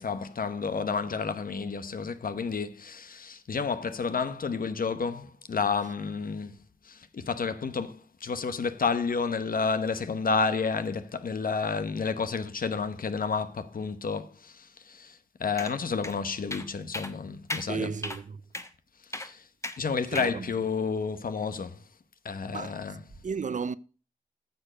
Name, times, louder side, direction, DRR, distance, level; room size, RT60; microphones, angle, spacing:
voice 1, 0.0-6.6 6.8-17.9 19.1-19.4 19.8-21.8 22.2-23.0, left 5 dB, 80° left, 1.0 m, -30 dB
sound 1, 15.6-15.7 16.0-16.1 16.5-16.7 16.9-17.1 17.5-17.7 18.0-18.2 18.5-18.7 19.1-19.3 19.6-19.8 20.1-20.3, left 2 dB, 20° left, 1.0 m, -35 dB
voice 2, 17.7-18.4 20.1-20.5 22.5-22.8 23.2-23.8, right 5 dB, 60° right, 0.5 m, -33 dB
9.4 x 6.9 x 5.0 m
wide cardioid pair, 65°, 14 cm